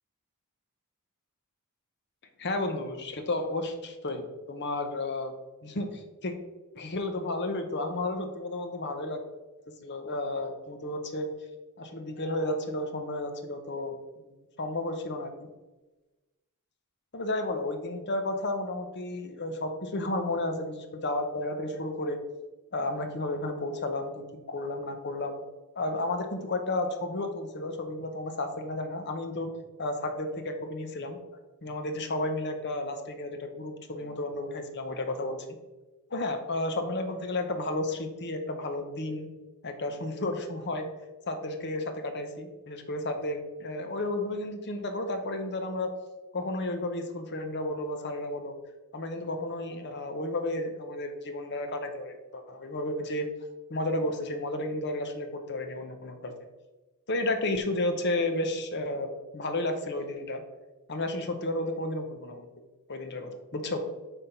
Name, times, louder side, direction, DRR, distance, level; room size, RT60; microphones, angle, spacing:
voice 1, 2.4-5.3 5.6-6.3 6.7-9.2 9.8-11.3 11.8-14.3 14.6-15.5 17.1-22.2 22.7-25.4 25.7-29.5 29.8-31.2 31.6-35.4 36.1-39.3 39.6-40.9 41.3-45.9 46.3-48.5 48.9-53.3 53.7-56.3 57.1-60.4 60.9-62.5 62.9-63.8, left 2 dB, 50° left, 6 dB, 0.9 m, -32 dB
8.3 x 3.6 x 5.8 m, 1.1 s
head